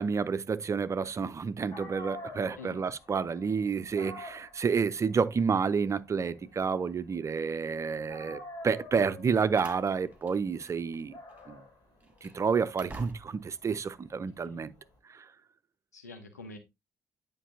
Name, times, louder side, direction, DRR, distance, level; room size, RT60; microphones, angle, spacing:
voice 1, 0.0-11.2 11.5-11.6 12.2-14.7 15.1-15.2, right 5 dB, 35° right, 0.6 m, -30 dB
Dog, 1.4-1.5 1.7-7.7 8.1-14.9, left 1 dB, 55° left, 3.7 m, -48 dB
voice 2, 2.6-2.9 14.4-14.6 15.9-16.6, left 2 dB, 85° left, 1.0 m, -46 dB
Slam, 9.2-11.0 11.3-11.5 12.0-13.6, right 2 dB, 15° right, 2.0 m, -50 dB
9.9 x 5.3 x 2.7 m
figure-of-eight pair, 40°, 9 cm